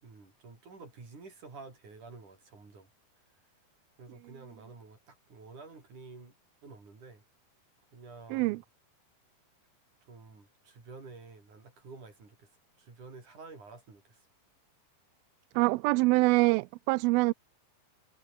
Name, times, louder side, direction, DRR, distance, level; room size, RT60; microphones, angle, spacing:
voice 1, 0.0-2.9 4.0-6.3 6.6-7.2 7.9-8.6 10.1-12.5 12.8-14.3, right 4 dB, 50° right, 8.3 m, -50 dB
voice 2, 15.6-17.3, right 23 dB, 80° right, 2.3 m, -25 dB
omnidirectional pair, 4.4 m